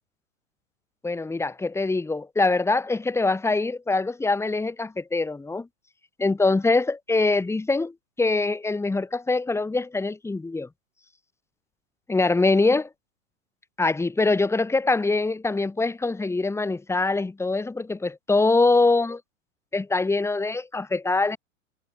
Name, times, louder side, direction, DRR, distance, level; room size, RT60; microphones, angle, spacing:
voice 1, 1.0-5.7 6.2-10.7 12.1-12.9 13.8-19.2 19.7-21.4, left 3 dB, 5° left, 5.1 m, -23 dB
figure-of-eight pair, 105°, 40 cm